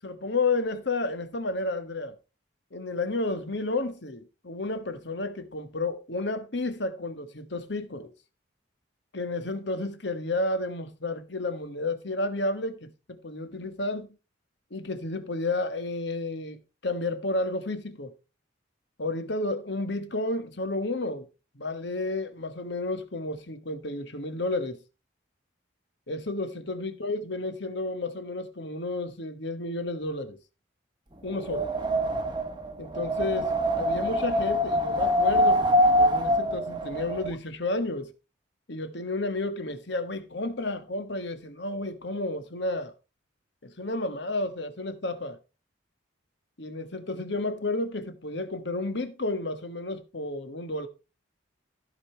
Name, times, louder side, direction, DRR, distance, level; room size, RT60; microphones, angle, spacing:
voice 1, 0.0-2.1 2.7-8.1 9.1-14.1 14.7-18.1 19.0-21.3 21.5-24.8 26.1-30.4 31.2-31.7 32.8-38.1 38.7-42.9 43.6-45.4 46.6-50.9, left 2 dB, 60° left, 1.4 m, -31 dB
Wind, 31.3-37.3, equal, 20° right, 1.0 m, -24 dB
15.0 x 5.3 x 4.4 m
head